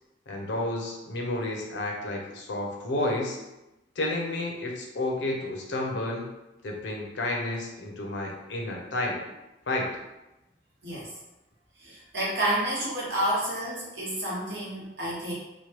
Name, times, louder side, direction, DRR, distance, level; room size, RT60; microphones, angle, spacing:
voice 1, 0.3-3.4 4.0-6.3 6.6-9.2 9.7-9.9, left 2 dB, 80° left, 0 dB, 0.6 m, -31 dB
voice 2, 11.8-15.3, right 1 dB, 65° right, -7 dB, 1.1 m, -30 dB
3.0 x 2.2 x 3.0 m, 0.96 s
head